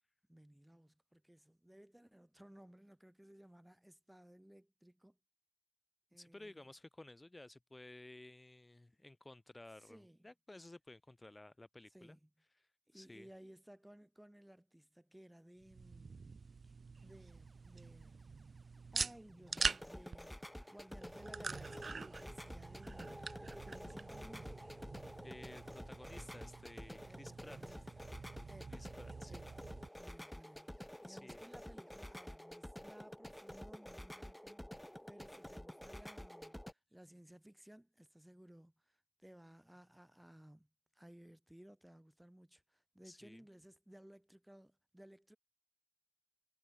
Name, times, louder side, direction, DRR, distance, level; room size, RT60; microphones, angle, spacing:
voice 1, 0.3-5.2 6.1-6.7 9.8-10.3 11.9-12.3 12.9-16.7 17.0-18.4 18.9-24.7 27.1-27.8 28.5-28.8 29.3-29.6 30.0-34.8 35.1-45.4, right 1 dB, 10° right, 1.5 m, -59 dB
voice 2, 6.1-12.2 12.5-13.3 25.2-27.8 28.7-29.4 31.1-31.4 43.0-43.4, left 2 dB, 25° left, 0.6 m, -55 dB
sound 1, 15.6-29.9, right 4 dB, 70° right, 0.5 m, -46 dB
sound 2, 17.0-32.0, right 2 dB, 35° right, 2.9 m, -75 dB
sound 3, 19.5-36.7, equal, 5° left, 1.2 m, -50 dB
wide cardioid pair, 65°, 0 cm